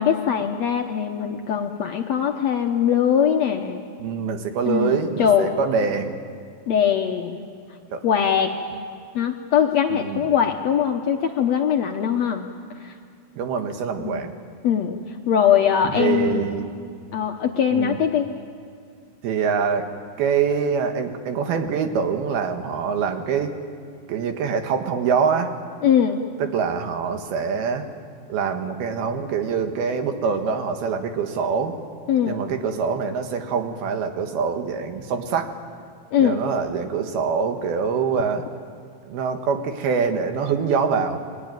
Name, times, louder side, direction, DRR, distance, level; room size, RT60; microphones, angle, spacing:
voice 1, 0.0-3.8 4.7-5.5 6.7-7.4 8.0-8.5 9.1-12.5 12.8-12.9 14.0-14.3 14.6-15.0 15.3-16.4 17.1-18.3 25.8-26.2 32.1-32.4 36.1-36.4, left 8 dB, 65° left, 3 dB, 1.8 m, -21 dB
voice 2, 4.0-6.2 7.9-8.0 10.0-10.2 13.4-14.3 15.8-16.7 17.7-18.0 19.2-19.9 20.2-23.5 24.1-25.5 26.4-27.9 28.3-31.8 32.3-35.5 36.2-38.5 39.1-41.2, right 6 dB, 85° right, 6 dB, 3.5 m, -24 dB
29.5 x 21.5 x 9.2 m, 2.2 s
omnidirectional pair, 4.3 m